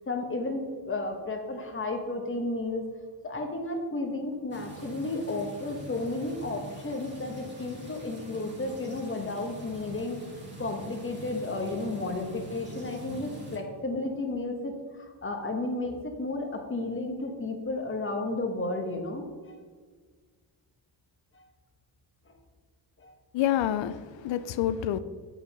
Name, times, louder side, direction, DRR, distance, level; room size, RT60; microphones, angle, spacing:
voice 1, 0.1-2.8 3.2-10.2 10.6-19.6 21.3-21.4 22.3-22.4 23.0-23.1, left 2 dB, 30° left, 4 dB, 1.1 m, -33 dB
sound 1, 4.5-13.6, right 1 dB, 25° right, 1.6 m, -44 dB
voice 2, 23.3-25.0, left 11 dB, 85° left, 14 dB, 0.6 m, -28 dB
7.9 x 5.1 x 5.4 m, 1.6 s
wide cardioid pair, 155°, 44 cm